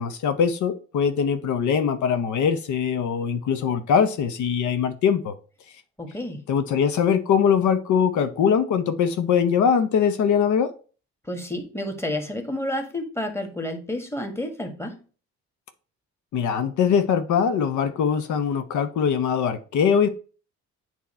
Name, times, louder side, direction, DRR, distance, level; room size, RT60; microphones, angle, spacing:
voice 1, 0.0-5.4 6.5-10.7 16.3-20.1, left 7 dB, 75° left, 0.7 m, -22 dB
voice 2, 6.0-6.4 11.3-15.0, left 1 dB, 10° left, 1.5 m, -30 dB
8.1 x 2.9 x 4.3 m
cardioid pair, 90°, 30 cm